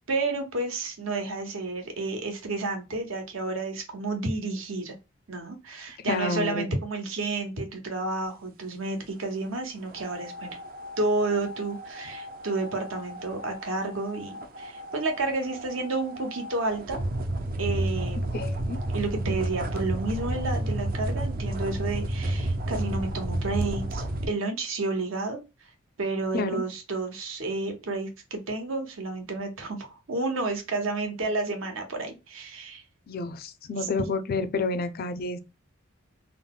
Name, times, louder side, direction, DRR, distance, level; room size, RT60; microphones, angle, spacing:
voice 1, 0.0-4.9 5.3-10.5 11.0-17.0 17.6-18.3 18.9-25.7 26.0-32.8 33.8-33.9, right 3 dB, 70° right, 0.8 m, -31 dB
voice 2, 6.0-6.7 18.3-18.8 26.3-26.6 33.1-35.4, left 3 dB, 45° left, 0.4 m, -29 dB
sound 1, 9.9-24.3, right 1 dB, 45° right, 0.4 m, -32 dB
3.7 x 2.0 x 2.2 m
head